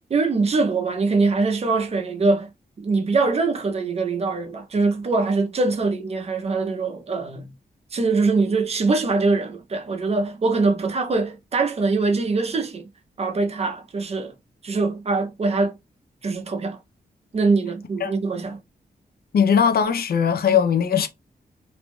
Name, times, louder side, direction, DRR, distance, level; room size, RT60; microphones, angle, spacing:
voice 1, 0.1-2.5 2.8-7.5 7.9-12.9 13.2-14.3 14.6-15.8 16.2-16.8 17.3-18.6, right 3 dB, 40° right, 0.5 m, -23 dB
voice 2, 19.3-21.1, left 7 dB, 65° left, 0.5 m, -19 dB
2.6 x 2.2 x 3.0 m
wide cardioid pair, 150°, 17 cm